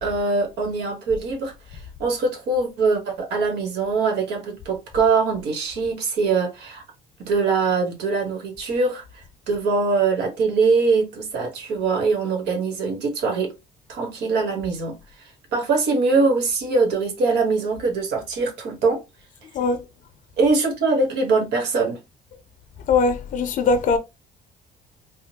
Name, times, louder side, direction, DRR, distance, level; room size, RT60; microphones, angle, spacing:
voice 1, 0.0-6.8 7.2-13.5 13.9-14.9 15.5-19.0 20.4-22.0, right 4 dB, 80° right, 1.2 m, -22 dB
voice 2, 22.9-24.0, left 4 dB, 50° left, 0.5 m, -20 dB
3.6 x 2.0 x 2.8 m
cardioid pair, 110°, 17 cm